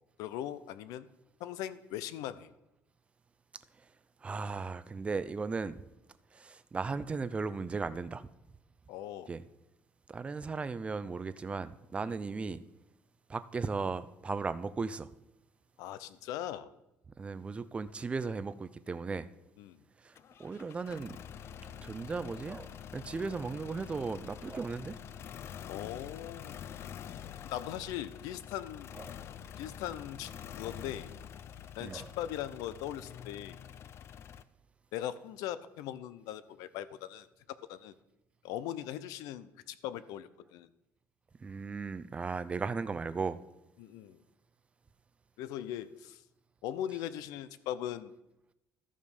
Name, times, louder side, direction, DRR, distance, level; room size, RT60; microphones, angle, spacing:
voice 1, 0.2-1.1 1.4-2.5 8.9-9.3 12.0-12.1 15.8-16.7 19.6-19.8 25.7-26.7 27.4-28.9 29.6-30.3 30.6-31.1 31.8-33.6 34.9-37.3 37.7-37.9 38.4-40.7 43.8-44.2 45.4-46.2 46.6-48.1, left 11 dB, 90° left, 0.6 m, -40 dB
voice 2, 4.2-5.9 6.3-8.3 9.3-9.4 10.1-12.6 13.3-15.1 17.2-19.3 20.0-21.2 21.8-25.0 29.0-29.2 31.8-32.1 41.4-43.4, right 4 dB, 20° right, 0.4 m, -36 dB
sound 1, 20.2-34.4, left 9 dB, 45° left, 0.4 m, -47 dB
13.5 x 5.0 x 5.4 m
cardioid pair, 140°, 6 cm